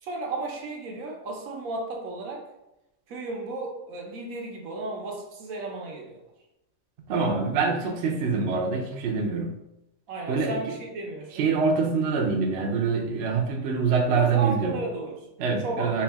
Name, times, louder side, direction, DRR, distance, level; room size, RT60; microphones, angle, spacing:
voice 1, 0.0-2.4 3.1-6.2 10.1-11.5 14.1-15.2 15.6-16.0, right 2 dB, 80° right, 1 dB, 1.2 m, -34 dB
voice 2, 7.1-9.5 10.3-10.5 11.3-14.8 15.4-16.0, right 5 dB, 60° right, 1 dB, 0.8 m, -25 dB
4.5 x 2.4 x 3.4 m, 0.92 s
omnidirectional pair, 1.4 m